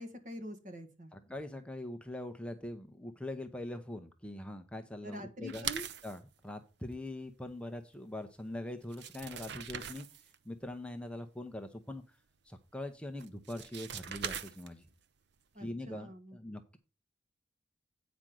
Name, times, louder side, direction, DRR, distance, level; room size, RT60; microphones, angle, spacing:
voice 1, 0.0-1.1 5.0-5.9 15.5-16.4, equal, 40° right, 6 dB, 1.6 m, -45 dB
voice 2, 1.1-5.7 6.0-10.1 10.4-12.0 12.4-14.9 15.6-16.8, left 1 dB, 5° left, 6 dB, 0.7 m, -42 dB
sound 1, 5.5-6.2 8.4-8.5 8.8-10.3 13.2-14.9, right 8 dB, 60° right, 0.6 m, -41 dB
8.9 x 5.2 x 6.0 m, 0.31 s
head